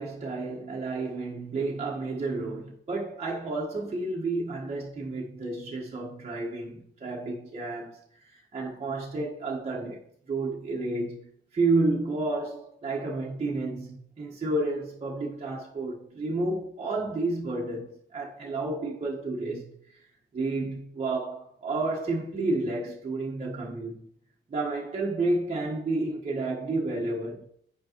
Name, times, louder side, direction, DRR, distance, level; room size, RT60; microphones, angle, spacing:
voice 1, 0.0-8.0 8.3-20.0 20.3-24.0 24.5-27.4, right 2 dB, 35° right, 1.3 m, -31 dB
8.1 x 5.3 x 3.0 m
cardioid pair, 90°, 20 cm